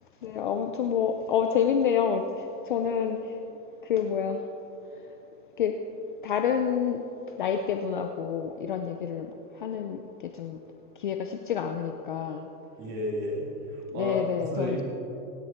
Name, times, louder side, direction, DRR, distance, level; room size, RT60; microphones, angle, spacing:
voice 1, 0.2-3.4 3.8-4.4 5.6-5.8 6.2-7.0 7.4-9.3 9.6-10.6 11.0-12.5 13.9-14.8, left 7 dB, 35° left, 5 dB, 0.5 m, -28 dB
voice 2, 12.8-14.8, equal, 20° right, -1 dB, 2.3 m, -32 dB
25.5 x 9.6 x 4.4 m, 2.9 s
supercardioid pair, 175°, 46 cm